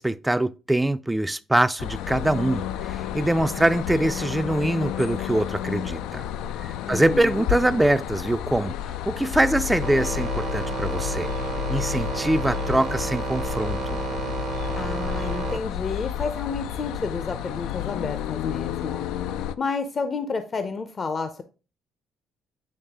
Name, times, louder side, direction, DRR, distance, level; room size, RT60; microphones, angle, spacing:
voice 1, 0.0-6.2 6.6-11.3 11.7-14.0, right 1 dB, 10° right, 0.4 m, -24 dB
sound 1, 1.8-19.5, left 11 dB, 85° left, 0.3 m, -31 dB
voice 2, 6.9-7.4 14.7-19.0 19.6-21.4, left 4 dB, 40° left, 0.6 m, -30 dB
sound 2, 9.8-15.6, right 7 dB, 60° right, 0.8 m, -32 dB
8.7 x 3.2 x 3.5 m
cardioid pair, 90°, 0 cm